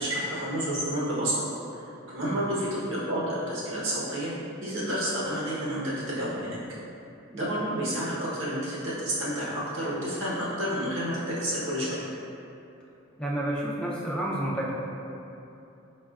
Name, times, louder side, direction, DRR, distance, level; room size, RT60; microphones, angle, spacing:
voice 1, 0.0-1.4 2.1-4.3 4.6-6.6 7.3-12.0, equal, 60° right, -8 dB, 1.0 m, -30 dB
voice 2, 13.2-14.7, right 1 dB, 5° left, -6 dB, 0.3 m, -30 dB
5.3 x 2.4 x 2.3 m, 2.8 s
head